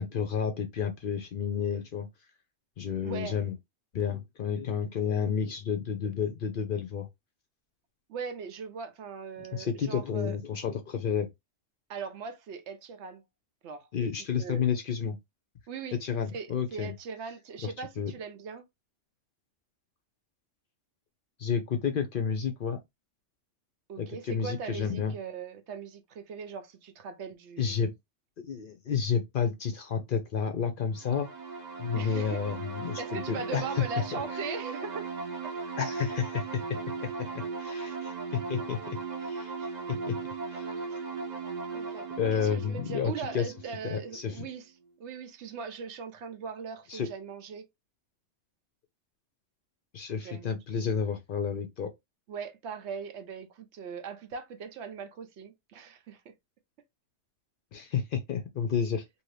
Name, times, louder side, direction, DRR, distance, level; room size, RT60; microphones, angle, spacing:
voice 1, 0.0-2.1 2.8-3.5 3.9-7.1 9.4-11.3 13.9-15.2 16.0-16.9 17.6-18.1 21.4-22.8 24.0-25.1 27.6-27.9 28.5-31.3 31.8-33.8 34.1-34.4 35.8-36.8 37.3-40.1 40.5-40.9 42.2-43.5 43.8-44.4 46.9-47.1 49.9-51.9 57.7-59.0, left 7 dB, 60° left, 0.6 m, -31 dB
voice 2, 3.0-3.4 8.1-10.4 11.9-13.2 13.6-13.9 14.3-14.7 15.7-16.0 16.3-18.6 23.9-27.8 32.0-32.4 33.0-35.1 41.7-44.7 45.0-47.6 50.1-50.5 52.3-56.2, right 5 dB, 70° right, 0.9 m, -40 dB
sound 1, 31.0-44.5, right 4 dB, 45° right, 0.6 m, -37 dB
2.7 x 2.6 x 3.2 m
omnidirectional pair, 1.2 m